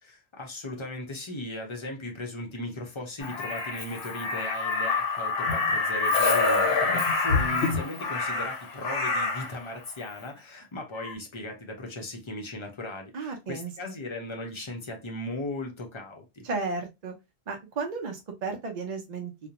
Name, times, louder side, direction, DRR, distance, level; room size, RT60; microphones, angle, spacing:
voice 1, 0.0-16.5, left 1 dB, 35° left, 0.5 m, -37 dB
Crow, 3.2-9.5 10.9-11.1, left 3 dB, 70° left, 0.9 m, -26 dB
voice 2, 13.1-13.9 16.4-17.1 17.5-19.5, right 4 dB, 45° right, 0.6 m, -34 dB
2.4 x 2.1 x 2.8 m
omnidirectional pair, 1.1 m